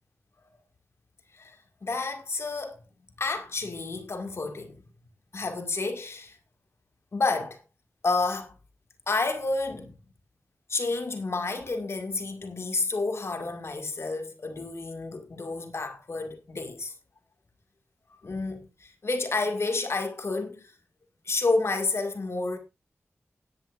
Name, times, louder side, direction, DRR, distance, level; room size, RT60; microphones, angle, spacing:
voice 1, 1.3-2.8 3.2-4.8 5.3-6.4 7.1-7.6 8.0-8.5 9.1-10.0 10.7-16.9 18.2-20.7 21.3-22.6, left 3 dB, 65° left, 2.1 m, -30 dB
17.0 x 10.5 x 2.5 m
wide cardioid pair, 60°, 5 cm